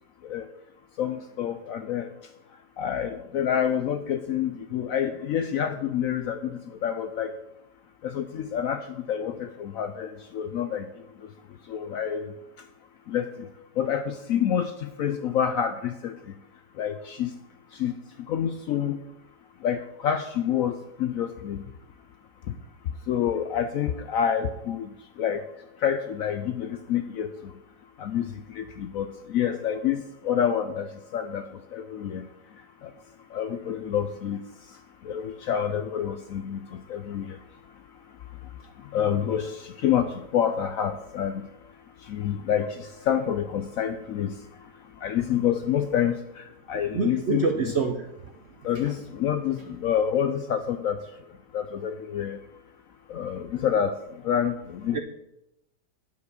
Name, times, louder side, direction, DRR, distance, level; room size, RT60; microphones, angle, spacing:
voice 1, 1.0-2.1 2.8-7.4 8.0-10.9 11.7-12.3 13.1-13.5 13.8-16.2 16.8-17.3 17.7-17.9 18.3-19.0 19.6-21.6 23.1-25.4 25.8-27.5 28.0-31.5 31.7-32.3 32.8-32.9 33.3-34.4 35.0-37.4 38.8-41.5 42.0-44.4 45.0-47.5 48.6-51.0 51.5-52.4 53.1-53.9 54.2-55.0, left 9 dB, 70° left, 9 dB, 0.8 m, -28 dB
voice 2, 46.7-48.3 48.6-49.0 49.7-49.8 54.9-55.0, right 5 dB, 60° right, 4 dB, 0.7 m, -28 dB
9.3 x 5.2 x 6.4 m, 0.87 s
omnidirectional pair, 1.9 m